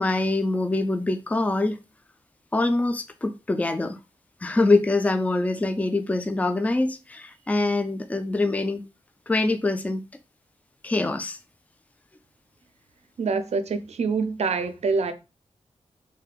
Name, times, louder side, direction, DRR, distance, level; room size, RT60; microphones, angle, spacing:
voice 1, 0.0-1.8 2.5-4.0 4.4-8.8 9.3-10.0 10.8-11.4, left 2 dB, 15° left, 0.3 m, -24 dB
voice 2, 13.2-15.1, right 4 dB, 75° right, 0.5 m, -25 dB
3.3 x 2.6 x 2.3 m
wide cardioid pair, 75°, 11 cm